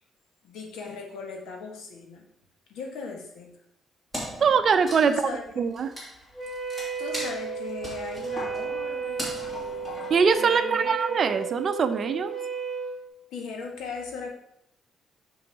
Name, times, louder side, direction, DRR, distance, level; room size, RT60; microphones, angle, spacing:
voice 1, 0.4-2.3 2.7-3.5 5.0-5.4 7.0-10.9 13.3-14.3, left 4 dB, 85° left, 2 dB, 1.6 m, -38 dB
Wood, 4.1-10.8, equal, 15° left, 3.0 m, -39 dB
voice 2, 4.4-5.3 5.6-5.9 10.1-12.3, right 6 dB, 40° right, 9 dB, 0.6 m, -22 dB
Wind instrument woodwind instrument, 6.3-13.0, right 5 dB, 5° right, 1.9 m, -33 dB
6.2 x 5.7 x 4.9 m, 0.77 s
cardioid pair, 145°, 0 cm